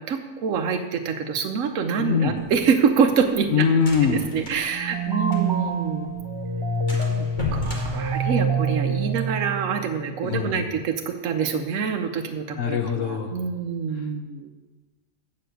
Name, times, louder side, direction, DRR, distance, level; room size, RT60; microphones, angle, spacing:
voice 1, 0.0-3.7 4.0-6.1 6.9-14.5, right 6 dB, 75° right, 4 dB, 1.1 m, -26 dB
voice 2, 2.0-2.4 3.5-4.3 10.2-10.5 12.6-13.3, left 6 dB, 70° left, 5 dB, 1.1 m, -22 dB
sound 1, 2.4-5.8 6.1-6.2 6.5-6.6 6.9-8.9, left 2 dB, 35° left, 1.7 m, -34 dB
sound 2, 4.7-10.1, right 4 dB, 25° right, 0.5 m, -26 dB
7.6 x 7.1 x 7.8 m, 1.2 s
omnidirectional pair, 1.4 m